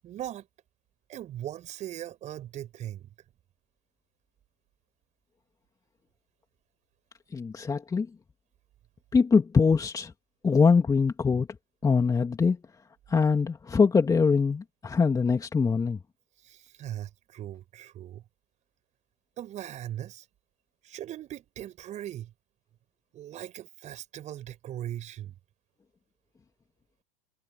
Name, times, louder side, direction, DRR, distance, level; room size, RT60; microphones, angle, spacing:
voice 1, 0.0-0.5 1.1-3.1 16.4-18.2 19.4-20.3 20.8-22.3 23.1-25.3, right 12 dB, 40° right, 5.8 m, -39 dB
voice 2, 7.3-8.1 9.1-10.1 10.4-11.5 11.8-12.6 13.1-16.0, left 5 dB, 20° left, 2.7 m, -23 dB
hypercardioid pair, 85°, 18 cm